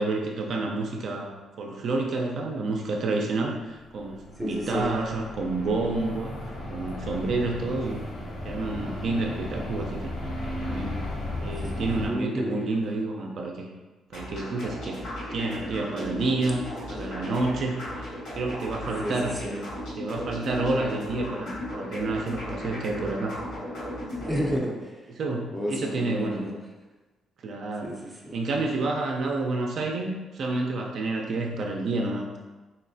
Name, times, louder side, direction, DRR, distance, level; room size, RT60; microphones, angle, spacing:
voice 1, 0.0-8.0 8.4-10.1 10.6-11.1 11.4-13.7 14.1-15.0 15.3-19.4 20.0-23.4 24.2-24.6 25.2-26.4 27.4-27.9 28.3-32.4, right 2 dB, 50° right, 1 dB, 0.4 m, -29 dB
sound 1, 3.8-12.1, left 1 dB, 60° left, 0.8 m, -35 dB
voice 2, 4.4-4.9 12.0-12.6 15.8-16.2 19.0-19.8 24.3-25.0 25.5-26.6 27.8-28.4, equal, ahead, -2 dB, 0.5 m, -31 dB
sound 2, 14.1-24.6, left 1 dB, 85° left, 1.5 m, -36 dB
4.2 x 3.1 x 2.6 m, 1.2 s
cardioid pair, 150°, 0 cm